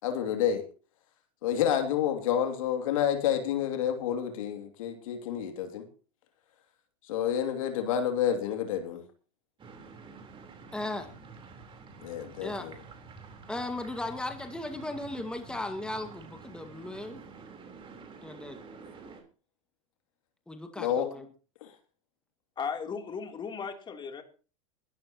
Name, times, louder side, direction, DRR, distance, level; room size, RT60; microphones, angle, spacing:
voice 1, 0.0-0.6 1.4-5.8 7.1-9.0 12.0-12.8 20.8-21.1 21.6-21.7, left 9 dB, 70° left, 2.8 m, -29 dB
sound 1, 9.6-19.2, right 4 dB, 30° right, 4.0 m, -49 dB
voice 2, 10.7-11.0 12.4-12.7 13.5-17.2 18.2-18.6 20.5-21.3, left 2 dB, 5° left, 1.9 m, -36 dB
voice 3, 22.6-24.2, left 6 dB, 25° left, 3.3 m, -36 dB
21.5 x 12.5 x 3.0 m
hypercardioid pair, 95°, 18 cm